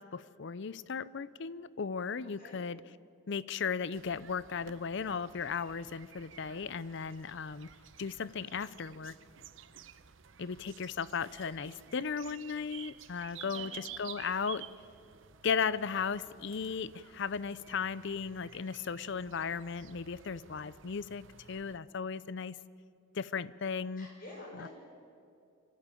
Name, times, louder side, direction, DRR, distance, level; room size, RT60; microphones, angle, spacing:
voice 1, 0.0-2.8 3.3-7.7 8.0-9.1 10.4-14.7 15.4-21.2 21.5-22.6 23.1-24.1 24.6-24.7, left 6 dB, 60° left, 19 dB, 0.5 m, -36 dB
sound 1, 3.9-21.8, right 9 dB, 65° right, 0.8 m, -52 dB
voice 2, 13.3-13.7 24.0-24.7, left 1 dB, 45° left, -1 dB, 6.2 m, -49 dB
24.5 x 15.0 x 9.1 m, 2.4 s
head